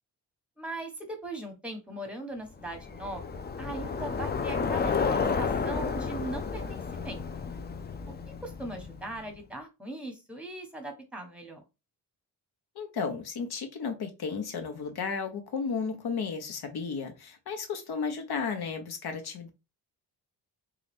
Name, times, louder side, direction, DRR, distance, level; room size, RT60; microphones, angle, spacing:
voice 1, 0.6-7.5 8.4-11.6, right 1 dB, 5° right, 4 dB, 1.1 m, -40 dB
Bicycle, 2.6-9.1, left 5 dB, 25° left, 0.4 m, -31 dB
voice 2, 12.7-19.5, left 5 dB, 65° left, 6 dB, 1.0 m, -33 dB
3.8 x 2.4 x 3.4 m, 0.26 s
cardioid pair, 115°, 40 cm